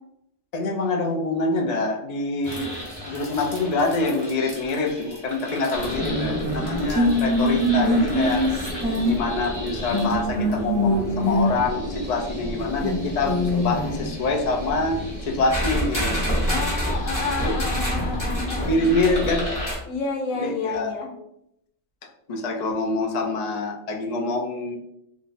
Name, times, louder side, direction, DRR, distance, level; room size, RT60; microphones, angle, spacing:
voice 1, 0.5-2.7 3.1-8.4 9.0-16.2 17.4-17.6 18.7-19.5 20.3-20.9 22.3-24.8, left 2 dB, 50° left, 1 dB, 0.5 m, -25 dB
sound 1, 2.4-19.8, equal, 15° left, 0.9 m, -26 dB
voice 2, 16.5-18.8 19.9-21.1, left 4 dB, 85° left, 2 dB, 1.0 m, -30 dB
2.5 x 2.2 x 3.9 m, 0.79 s
omnidirectional pair, 1.3 m